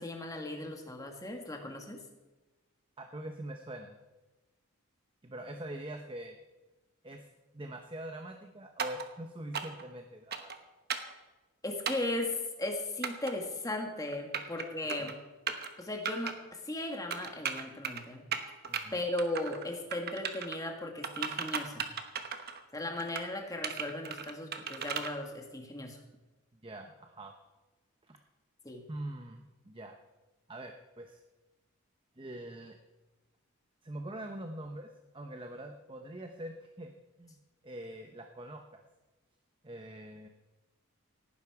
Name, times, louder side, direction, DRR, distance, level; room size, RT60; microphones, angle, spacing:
voice 1, 0.0-2.0 11.6-15.1 15.8-18.3 18.9-21.8 22.7-26.0 28.6-28.8, left 1 dB, 15° left, 3 dB, 1.6 m, -37 dB
voice 2, 3.0-4.0 5.2-6.4 7.0-7.3 7.5-10.5 15.0-15.1 18.7-19.0 26.6-27.3 28.1-28.2 28.9-30.0 30.5-31.2 32.2-32.8 33.8-34.9 35.1-36.9 37.2-38.8 39.6-40.3, right 1 dB, 20° right, 5 dB, 0.8 m, -44 dB
sound 1, 8.8-9.1 9.5-9.8 10.3-10.6 10.9-11.1 11.9-12.1 13.0-13.3 14.1-14.6 14.9-15.1 15.5-15.7 16.1-16.3 17.1-18.0 18.3-18.8 19.2-19.7 19.9-20.6 21.0-22.6 23.0-23.3 23.6-25.1, right 7 dB, 45° right, 1.1 m, -36 dB
18.0 x 10.5 x 4.8 m, 1.1 s
head